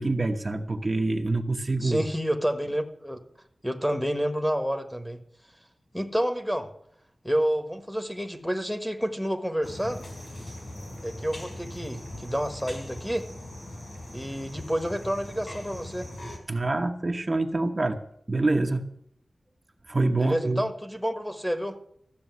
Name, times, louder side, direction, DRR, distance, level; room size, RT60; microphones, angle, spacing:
voice 1, 0.0-2.0 16.5-18.0 18.3-18.9 19.9-20.6, right 2 dB, 35° right, 4 dB, 1.0 m, -26 dB
voice 2, 1.8-3.2 3.6-5.2 5.9-6.7 7.2-10.0 11.0-13.3 14.1-16.1 20.2-21.8, equal, ahead, 7 dB, 1.4 m, -29 dB
sound 1, 9.6-16.4, left 1 dB, 45° left, 3.9 m, -40 dB
14.0 x 6.8 x 9.4 m, 0.70 s
wide cardioid pair, 90°, 0 cm